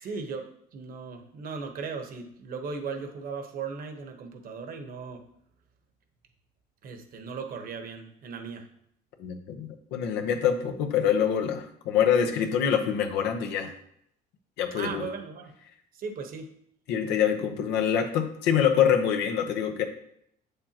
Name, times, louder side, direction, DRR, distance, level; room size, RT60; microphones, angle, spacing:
voice 1, 0.0-5.2 6.8-8.6 14.7-15.5 16.0-16.5, right 5 dB, 60° right, 6 dB, 1.1 m, -37 dB
voice 2, 9.2-13.7 14.6-15.1 16.9-19.9, left 8 dB, 85° left, 4 dB, 0.9 m, -25 dB
7.7 x 6.9 x 2.9 m, 0.72 s
cardioid pair, 110°, 17 cm